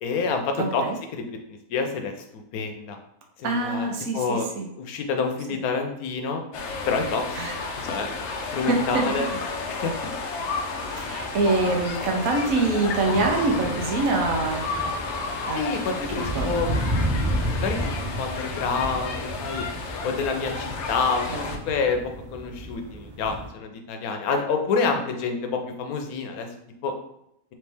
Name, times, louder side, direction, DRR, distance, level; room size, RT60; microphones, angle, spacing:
voice 1, 0.0-0.8 1.1-3.0 3.4-3.9 4.1-4.5 4.8-6.4 6.9-7.2 7.8-8.1 8.5-9.4 9.7-9.9 15.5-16.8 17.5-19.6 20.0-22.0 22.3-26.5 26.8-26.9, left 4 dB, 90° left, 5 dB, 1.1 m, -28 dB
voice 2, 0.6-1.0 3.4-4.7 7.4-7.6 8.9-9.0 10.9-14.6 15.5-16.5 21.3-21.5, right 3 dB, 75° right, 1 dB, 1.1 m, -25 dB
sound 1, 6.5-21.6, left 3 dB, 65° left, 0.8 m, -32 dB
sound 2, 11.0-23.5, right 1 dB, 40° right, 0.9 m, -33 dB
3.2 x 3.1 x 3.3 m, 0.76 s
omnidirectional pair, 1.5 m